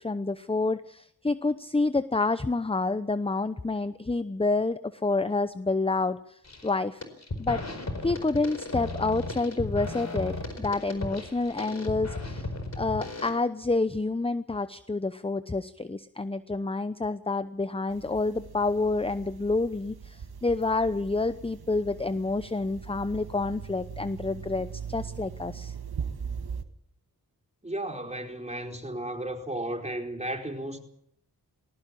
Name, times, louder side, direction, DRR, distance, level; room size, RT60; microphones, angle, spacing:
voice 1, 0.0-7.0 7.4-7.6 8.0-12.5 12.8-25.7, left 3 dB, 15° left, 0.8 m, -28 dB
sound 1, 6.4-6.7 7.0-13.3, left 2 dB, 45° left, 4.6 m, -35 dB
sound 2, 17.9-26.6, right 7 dB, 75° right, 1.8 m, -40 dB
voice 2, 27.6-30.8, right 1 dB, 15° right, 4.4 m, -34 dB
20.0 x 18.0 x 8.6 m
cardioid pair, 65°, 38 cm